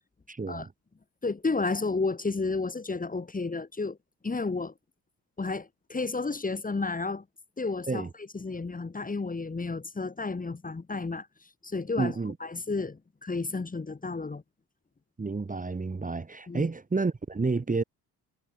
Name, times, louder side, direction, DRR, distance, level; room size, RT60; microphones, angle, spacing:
voice 1, 0.3-0.7 7.9-8.1 12.0-12.3 15.2-17.8, right 4 dB, 20° right, 1.4 m, -30 dB
voice 2, 1.2-4.0 4.2-4.7 5.4-7.2 7.6-14.4 16.5-16.7, left 3 dB, 20° left, 1.6 m, -32 dB
cardioid pair, 90°, 39 cm